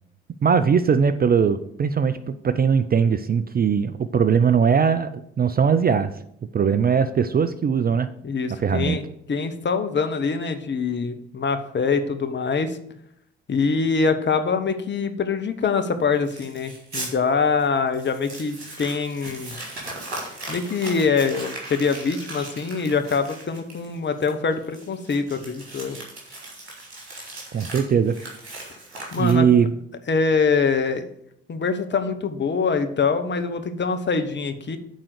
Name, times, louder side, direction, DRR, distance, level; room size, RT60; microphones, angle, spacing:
voice 1, 0.4-6.1 6.5-8.1 8.6-9.0 27.5-28.2 29.2-29.7, right 6 dB, 30° right, 12 dB, 0.5 m, -20 dB
voice 2, 8.2-12.8 13.5-19.5 20.5-26.0 29.1-29.5 30.1-31.0 31.5-34.8, left 5 dB, 35° left, 8 dB, 1.0 m, -24 dB
Crumpling crinkling, 16.3-17.1 17.6-17.7 17.9-29.6, right 2 dB, 85° right, 1.5 m, -38 dB
9.0 x 3.7 x 6.7 m, 0.72 s
figure-of-eight pair, 40°, 32 cm